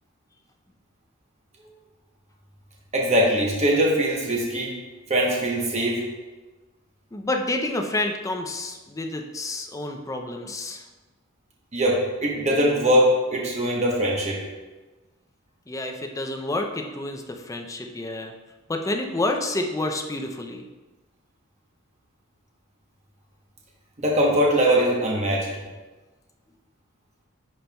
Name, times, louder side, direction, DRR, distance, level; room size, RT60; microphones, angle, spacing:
voice 1, 2.9-4.8 5.1-6.0 11.7-14.4 24.0-25.5, equal, 35° right, -2 dB, 0.9 m, -21 dB
voice 2, 7.1-10.8 15.7-18.3 18.7-20.7, left 2 dB, 15° left, 3 dB, 0.4 m, -29 dB
10.5 x 4.4 x 2.2 m, 1.2 s
head